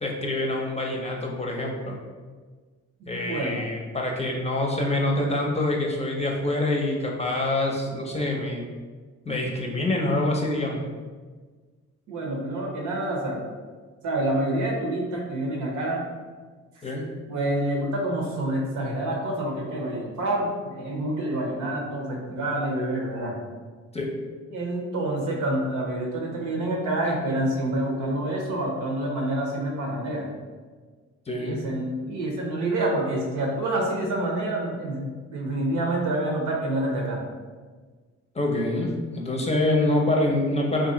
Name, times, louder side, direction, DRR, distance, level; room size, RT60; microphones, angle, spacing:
voice 1, 0.0-2.0 3.1-8.6 9.3-10.8 16.8-17.1 23.9-24.2 27.0-27.1 31.3-31.7 38.3-40.9, left 1 dB, 20° left, 0 dB, 0.6 m, -26 dB
voice 2, 3.0-3.6 12.1-13.4 14.0-16.1 17.3-23.4 24.5-30.3 31.3-37.2, right 1 dB, 80° right, -1 dB, 0.9 m, -27 dB
3.0 x 2.6 x 3.8 m, 1.5 s
cardioid pair, 90°, 30 cm